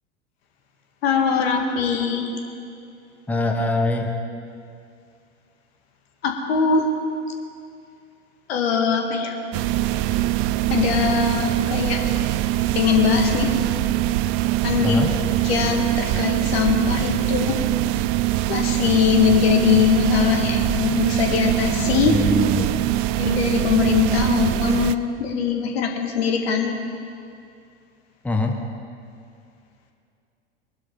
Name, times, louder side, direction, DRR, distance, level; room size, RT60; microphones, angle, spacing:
voice 1, 1.0-2.3 6.2-6.9 8.5-9.4 10.7-12.0 12.8-13.5 14.6-15.1 15.4-17.6 18.5-22.2 23.2-26.7, left 7 dB, 60° left, 3 dB, 2.0 m, -21 dB
voice 2, 3.3-4.1 14.8-15.1 19.3-19.4 22.1-22.8 28.2-28.6, left 2 dB, 5° left, 3 dB, 1.1 m, -23 dB
sound 1, 9.5-25.0, right 15 dB, 35° right, 0.4 m, -23 dB
21.0 x 12.0 x 4.0 m, 2.4 s
figure-of-eight pair, 85°, 34 cm